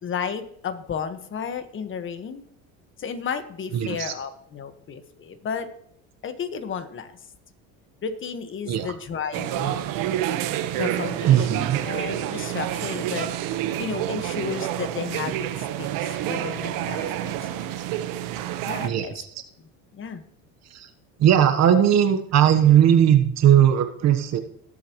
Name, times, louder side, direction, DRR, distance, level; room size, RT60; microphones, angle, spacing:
voice 1, 0.0-2.5 3.0-5.7 6.2-7.1 8.0-9.8 10.7-13.3 13.8-17.7 18.6-19.1 19.9-20.2, left 6 dB, 35° left, 9 dB, 1.5 m, -33 dB
voice 2, 3.7-4.1 8.6-8.9 11.2-11.8 18.8-19.3 20.7-20.9 21.2-24.4, right 10 dB, 45° right, 8 dB, 1.3 m, -18 dB
sound 1, 9.3-18.9, right 12 dB, 65° right, 1.3 m, -28 dB
19.5 x 8.2 x 3.1 m, 0.68 s
supercardioid pair, 105°, 36 cm